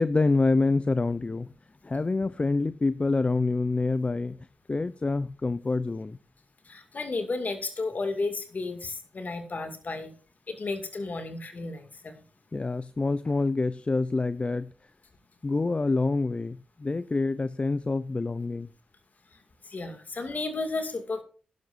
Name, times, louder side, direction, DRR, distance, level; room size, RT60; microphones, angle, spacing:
voice 1, 0.0-1.5 1.8-4.4 4.7-6.2 12.5-14.7 15.4-18.7, left 3 dB, 35° left, 15 dB, 0.5 m, -26 dB
voice 2, 6.6-10.1 10.5-12.2 19.6-21.2, left 3 dB, 50° left, 7 dB, 2.2 m, -33 dB
15.0 x 11.5 x 2.6 m, 0.38 s
supercardioid pair, 40°, 4 cm